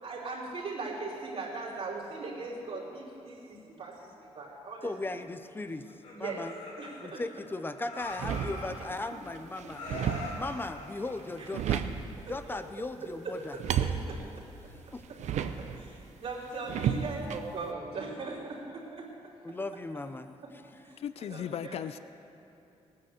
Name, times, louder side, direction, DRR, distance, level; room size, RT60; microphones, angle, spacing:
voice 1, 0.0-4.9 6.1-6.5 6.8-7.2 11.4-11.5 13.2-13.4 13.8-14.2 15.1-19.1 19.5-19.6 20.8-22.0, right 3 dB, 60° right, -6 dB, 3.2 m, -39 dB
voice 2, 4.8-5.9 6.2-6.5 7.0-9.8 10.4-11.8 12.3-13.6 14.9-15.0 19.4-20.3, left 2 dB, 20° left, 10 dB, 0.6 m, -37 dB
Laughter, 5.8-7.5 7.8-9.3 9.7-12.0, left 2 dB, 90° left, 3.0 m, -43 dB
sound 1, 8.0-9.0 9.4-10.6 11.2-12.2 13.4-15.8 16.7-17.4, right 8 dB, 85° right, 0.7 m, -33 dB
voice 3, 21.0-22.0, left 9 dB, 60° left, 13 dB, 0.4 m, -36 dB
18.0 x 9.5 x 6.6 m, 2.9 s
wide cardioid pair, 140°, 12 cm